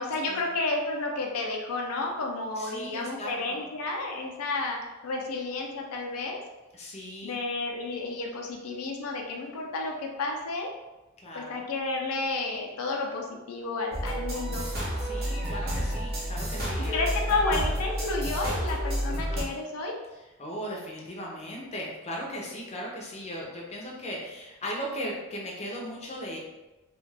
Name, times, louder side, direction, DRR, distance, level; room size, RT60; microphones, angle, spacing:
voice 1, 0.0-6.4 7.2-10.7 11.3-14.7 16.9-20.0, left 3 dB, 90° left, 1 dB, 0.5 m, -31 dB
voice 2, 2.6-3.6 6.7-7.4 11.2-11.6 15.0-17.0 20.4-26.4, equal, 30° left, -2 dB, 0.6 m, -37 dB
sound 1, 13.9-19.4, equal, 45° right, 0.8 m, -30 dB
2.4 x 2.3 x 3.2 m, 1.1 s
head